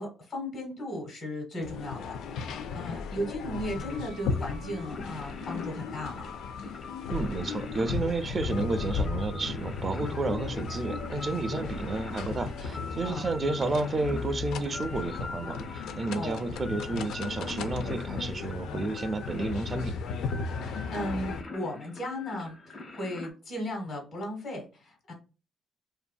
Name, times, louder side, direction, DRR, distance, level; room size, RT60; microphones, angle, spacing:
voice 1, 0.0-6.3 13.0-13.3 16.1-16.4 20.6-25.1, left 1 dB, 60° left, 2 dB, 1.3 m, -36 dB
sound 1, 1.6-21.4, left 5 dB, 80° left, 0.3 m, -36 dB
sound 2, 3.8-23.3, left 2 dB, 40° left, 0.7 m, -44 dB
voice 2, 7.1-20.0, right 3 dB, 35° right, 9 dB, 0.4 m, -31 dB
2.6 x 2.5 x 2.2 m, 0.32 s
cardioid pair, 90°, 0 cm